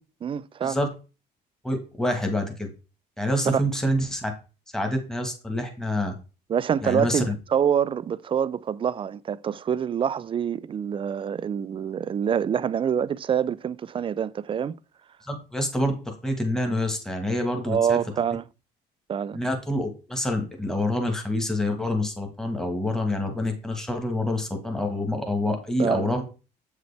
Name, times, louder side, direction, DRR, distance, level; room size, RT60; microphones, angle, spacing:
voice 1, 0.2-0.8 3.5-3.7 6.5-14.8 17.7-18.4 19.1-19.4 25.8-26.2, right 8 dB, 30° right, 0.3 m, -26 dB
voice 2, 1.6-2.7 3.2-4.3 4.7-6.1 6.8-7.3 15.2-18.0 19.3-26.2, left 1 dB, 5° left, 1.4 m, -27 dB
7.5 x 5.1 x 3.3 m
cardioid pair, 110°, 17 cm